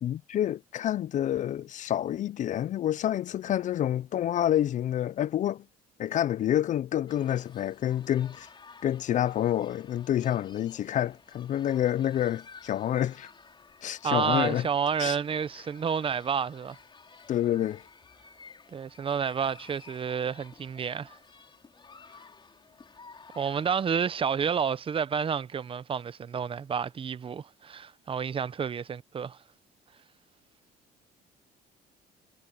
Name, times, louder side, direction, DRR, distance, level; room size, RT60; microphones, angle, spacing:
voice 1, 0.0-5.6 6.0-8.5 8.8-13.3 13.8-14.7 15.0-15.2 17.3-17.8, left 11 dB, 50° left, 0.4 m, -28 dB
sound 1, 7.1-23.8, left 5 dB, 30° left, 4.2 m, -53 dB
voice 2, 14.0-16.8 18.7-21.2 23.4-29.4, right 7 dB, 30° right, 0.6 m, -30 dB
cardioid pair, 110°, 17 cm